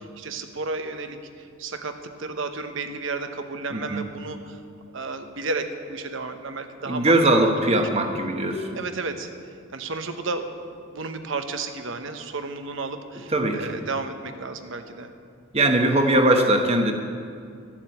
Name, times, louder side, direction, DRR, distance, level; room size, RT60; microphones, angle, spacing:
voice 1, 0.0-4.6 4.9-7.2 7.4-7.8 8.7-9.3 9.7-15.1, right 3 dB, 65° right, 7 dB, 1.0 m, -33 dB
voice 2, 3.7-4.0 6.9-8.7 13.3-13.7 15.5-16.9, right 1 dB, 30° right, 4 dB, 1.1 m, -20 dB
13.5 x 7.4 x 8.6 m, 2.3 s
head